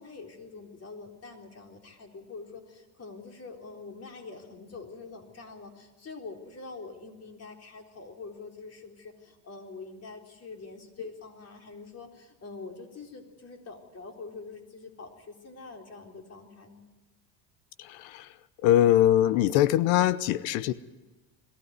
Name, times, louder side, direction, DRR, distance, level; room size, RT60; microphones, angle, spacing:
voice 1, 0.0-16.8, left 4 dB, 30° left, 3 dB, 3.9 m, -45 dB
voice 2, 18.6-20.7, left 12 dB, 70° left, 17 dB, 0.9 m, -22 dB
22.0 x 16.0 x 9.5 m, 1.1 s
supercardioid pair, 100°, 47 cm